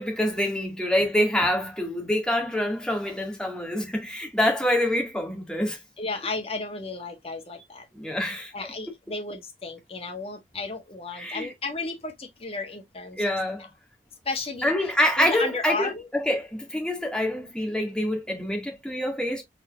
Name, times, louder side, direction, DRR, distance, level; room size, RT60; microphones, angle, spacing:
voice 1, 0.0-5.8 7.9-8.7 11.1-11.5 13.2-13.7 14.6-19.4, left 1 dB, 5° left, 1.9 m, -26 dB
voice 2, 6.0-7.8 8.5-13.3 14.2-16.1, left 3 dB, 35° left, 1.5 m, -34 dB
4.4 x 4.2 x 2.5 m
head